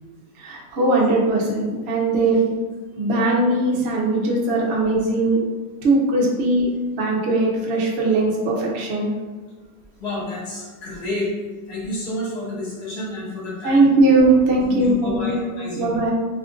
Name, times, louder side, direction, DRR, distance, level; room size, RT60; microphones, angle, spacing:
voice 1, 0.4-2.5 3.0-5.4 5.8-6.7 7.0-9.1 13.6-15.4 15.8-16.1, right 2 dB, 60° right, -2 dB, 0.7 m, -19 dB
voice 2, 10.0-11.3 11.7-13.9 14.7-16.0, left 2 dB, 60° left, -7 dB, 1.3 m, -30 dB
2.8 x 2.4 x 3.6 m, 1.4 s
omnidirectional pair, 1.8 m